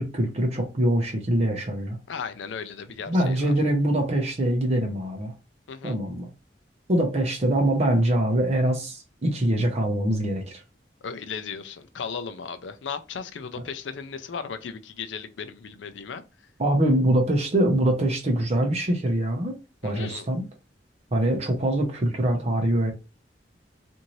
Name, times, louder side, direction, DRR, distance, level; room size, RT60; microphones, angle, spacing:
voice 1, 0.0-2.0 3.1-5.3 5.8-6.3 6.9-10.6 16.6-19.6 19.8-20.4 21.1-22.9, right 1 dB, 35° right, 0.7 m, -23 dB
voice 2, 2.1-3.5 5.7-6.0 11.0-16.2 19.8-20.3, left 6 dB, 85° left, 0.5 m, -36 dB
2.6 x 2.6 x 3.0 m
head